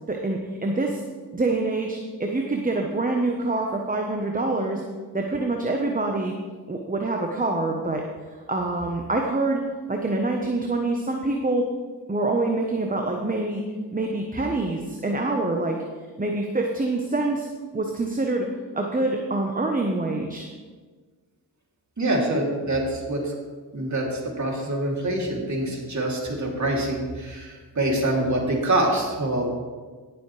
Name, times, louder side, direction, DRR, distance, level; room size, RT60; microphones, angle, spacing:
voice 1, 0.1-1.0 1.3-4.8 5.1-6.3 6.7-8.0 8.5-9.6 9.9-11.7 12.1-13.6 13.9-15.8 16.2-17.5 17.7-18.5 18.7-20.5, right 2 dB, 20° right, 2 dB, 1.1 m, -25 dB
voice 2, 22.0-23.3 23.7-29.5, right 1 dB, 40° right, -1 dB, 3.1 m, -25 dB
17.0 x 7.2 x 3.4 m, 1.4 s
cardioid pair, 60°, 42 cm